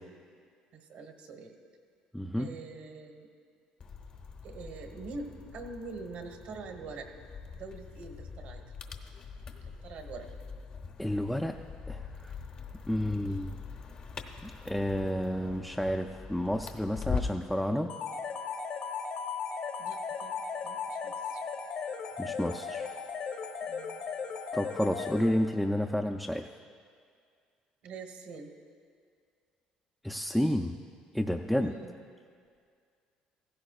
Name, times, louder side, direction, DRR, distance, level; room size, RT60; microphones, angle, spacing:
voice 1, 0.7-1.5 2.4-3.3 4.4-7.1 7.5-8.6 9.6-10.3 13.1-13.5 19.8-21.4 23.7-24.0 27.8-28.5 31.5-31.9, right 3 dB, 65° right, 5 dB, 1.2 m, -45 dB
voice 2, 2.1-2.5 11.0-11.6 11.9-12.3 12.9-13.6 14.4-17.9 22.2-22.9 24.5-26.5 30.0-30.8 31.1-31.7, equal, ahead, 3 dB, 0.4 m, -30 dB
sound 1, 3.8-17.5, left 5 dB, 40° left, 0.8 m, -42 dB
sound 2, 17.9-25.7, left 5 dB, 55° left, 1.1 m, -37 dB
16.0 x 15.5 x 2.4 m, 2.2 s
cardioid pair, 125°, 2 cm